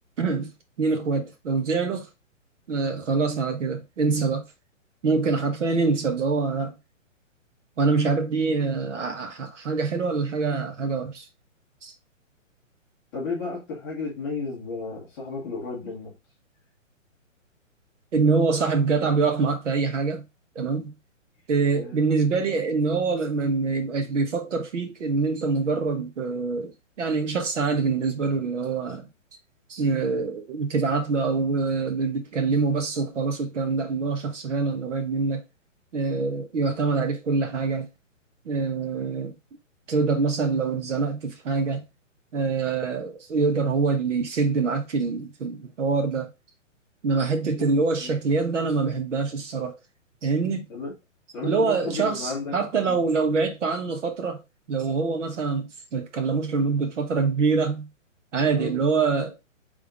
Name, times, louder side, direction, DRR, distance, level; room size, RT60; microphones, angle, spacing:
voice 1, 0.2-0.5 0.8-2.1 2.7-4.4 5.0-6.7 7.8-11.3 11.8-11.9 18.1-20.2 20.5-20.9 21.5-29.1 29.7-35.4 35.9-37.9 38.4-39.3 39.9-41.8 42.3-46.3 47.0-49.8 50.2-50.7 51.4-54.4 54.7-57.9 58.3-59.4, right 4 dB, 65° right, 1.2 m, -25 dB
voice 2, 13.1-16.1 21.7-22.0 48.0-48.2 50.7-50.9 51.3-52.5 52.8-53.0 58.4-58.8, left 4 dB, 10° left, 1.0 m, -33 dB
3.6 x 3.5 x 3.7 m
hypercardioid pair, 170°, 39 cm